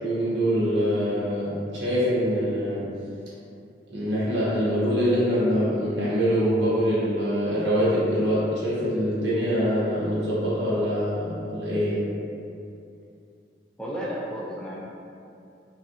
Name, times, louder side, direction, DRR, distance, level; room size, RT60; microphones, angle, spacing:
voice 1, 0.0-2.8 3.9-12.1, equal, 75° right, -8 dB, 1.0 m, -24 dB
voice 2, 13.8-14.8, equal, 5° left, -6 dB, 0.3 m, -32 dB
3.5 x 2.4 x 2.6 m, 2.5 s
head